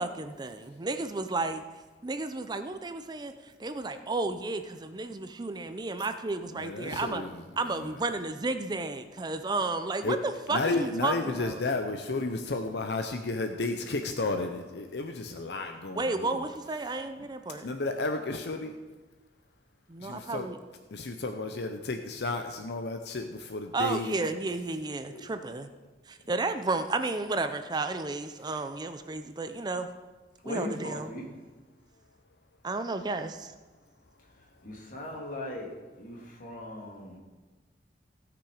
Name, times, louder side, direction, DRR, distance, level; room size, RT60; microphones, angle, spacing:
voice 1, 0.0-1.6 2.0-7.2 7.6-11.6 15.9-17.7 19.9-20.6 23.7-25.7 26.1-29.9 30.5-31.1 32.6-33.5, right 3 dB, 25° right, 9 dB, 0.5 m, -32 dB
voice 2, 6.5-7.4 10.0-10.2 10.5-16.4 17.6-18.8 20.0-20.5 20.9-24.3 25.1-25.3, left 3 dB, 70° left, 6 dB, 0.7 m, -32 dB
voice 3, 30.4-31.2 34.4-37.2, left 1 dB, 50° left, -1 dB, 2.3 m, -39 dB
16.5 x 6.1 x 4.9 m, 1.3 s
head